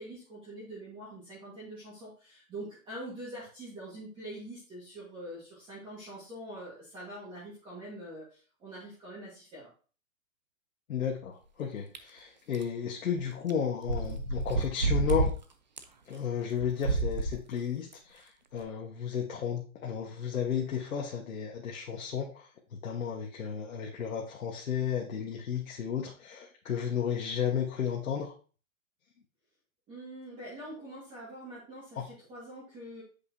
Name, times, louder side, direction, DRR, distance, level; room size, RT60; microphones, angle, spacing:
voice 1, 0.0-9.7 29.9-33.0, right 1 dB, 10° right, -7 dB, 1.6 m, -44 dB
voice 2, 10.9-15.3 16.0-28.3 31.9-32.0, left 8 dB, 80° left, -2 dB, 1.4 m, -33 dB
sound 1, 11.9-12.0 12.5-12.6 13.5-13.6 13.8-15.3 15.8-15.9 16.6-17.4 17.9-18.0 18.6-18.7, right 3 dB, 35° right, 0.4 m, -29 dB
8.3 x 5.2 x 2.8 m, 0.39 s
hypercardioid pair, 170°, 42 cm